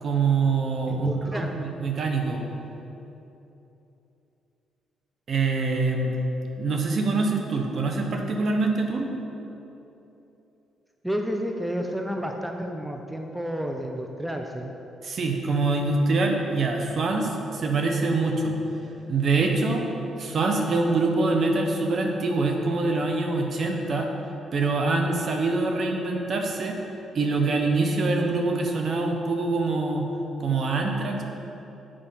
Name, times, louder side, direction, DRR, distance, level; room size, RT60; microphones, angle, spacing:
voice 1, 0.0-2.4 5.3-6.2 6.6-9.1 15.0-18.5 19.1-19.8 20.2-24.1 24.5-26.8 27.1-30.1 30.4-31.2, right 3 dB, 50° right, 3 dB, 1.0 m, -24 dB
voice 2, 0.9-1.5 11.0-14.7, equal, 5° right, 3 dB, 0.6 m, -31 dB
7.8 x 4.9 x 5.7 m, 3.0 s
cardioid pair, 90°, 0 cm